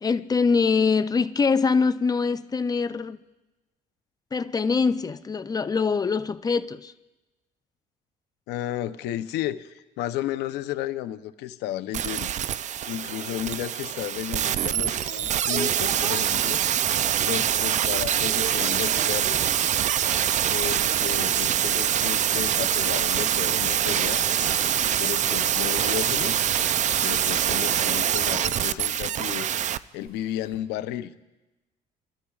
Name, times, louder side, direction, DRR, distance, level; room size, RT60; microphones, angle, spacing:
voice 1, 0.0-3.2 4.3-6.9, left 5 dB, 20° left, 0.5 m, -23 dB
voice 2, 8.5-12.3 12.6-16.6 17.2-19.5 20.5-24.3 24.8-26.4 27.0-29.5 29.9-31.1, left 13 dB, 85° left, 0.7 m, -33 dB
sound 1, 11.9-29.8 30.1-30.2, right 10 dB, 45° right, 0.4 m, -24 dB
sound 2, 12.3-16.4 16.9-17.3 17.6-19.7 22.2-30.6, right 4 dB, 75° right, 3.3 m, -43 dB
sound 3, 23.9-29.0, left 7 dB, 65° left, 2.1 m, -44 dB
28.0 x 13.0 x 2.4 m
cardioid pair, 110°, 17 cm